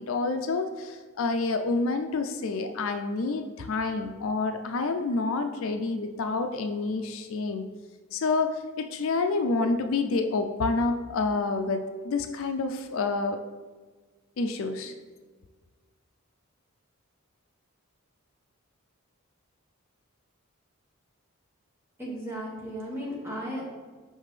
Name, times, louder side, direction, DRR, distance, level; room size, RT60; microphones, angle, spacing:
voice 1, 0.0-7.6 8.1-13.4 14.4-14.9, left 3 dB, 65° left, 6 dB, 0.4 m, -28 dB
voice 2, 22.0-23.6, equal, 10° right, -5 dB, 1.4 m, -35 dB
5.7 x 5.4 x 3.2 m, 1.4 s
head